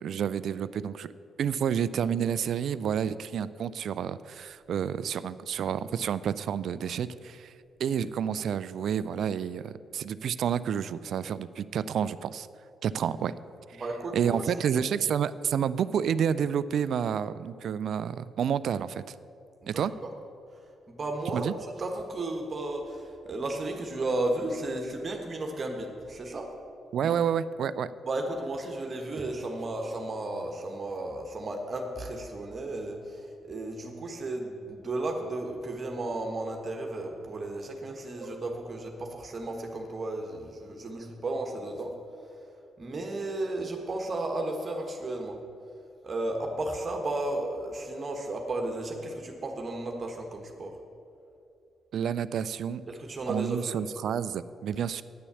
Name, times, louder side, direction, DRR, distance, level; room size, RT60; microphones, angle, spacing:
voice 1, 0.0-1.1 1.4-7.5 7.8-12.5 12.8-13.3 13.7-13.8 14.1-19.1 19.7-19.9 21.3-21.5 26.9-27.9 51.9-52.8 53.3-55.0, right 8 dB, 65° right, 16 dB, 0.3 m, -29 dB
voice 2, 13.7-14.5 19.6-20.1 20.9-26.5 27.0-27.2 28.1-41.9 42.8-45.4 46.0-50.8 52.9-53.7, right 2 dB, 45° right, 2 dB, 1.3 m, -34 dB
9.7 x 6.9 x 6.9 m, 2.6 s
hypercardioid pair, 45°, 0 cm